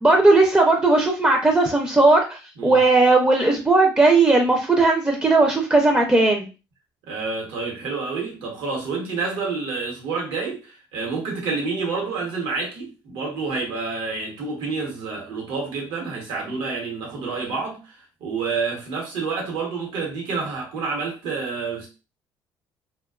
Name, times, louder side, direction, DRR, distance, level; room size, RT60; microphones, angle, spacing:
voice 1, 0.0-6.5, right 2 dB, 15° right, 0.4 m, -17 dB
voice 2, 7.1-21.9, right 4 dB, 80° right, 0.9 m, -28 dB
2.4 x 2.2 x 2.3 m
supercardioid pair, 85°, 8 cm